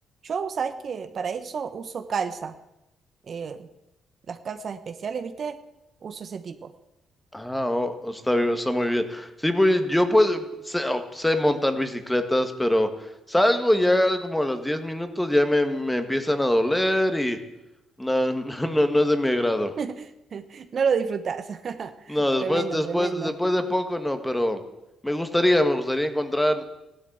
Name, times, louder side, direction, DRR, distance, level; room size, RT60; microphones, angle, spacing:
voice 1, 0.2-2.5 3.3-3.7 4.3-5.6 6.0-6.7 19.8-23.3, right 6 dB, 50° right, 9 dB, 1.1 m, -30 dB
voice 2, 7.3-12.9 13.3-17.4 18.0-19.7 22.1-24.6 25.0-26.6, left 1 dB, 5° left, 8 dB, 1.8 m, -23 dB
15.5 x 11.5 x 8.1 m, 0.93 s
cardioid pair, 90°, 0 cm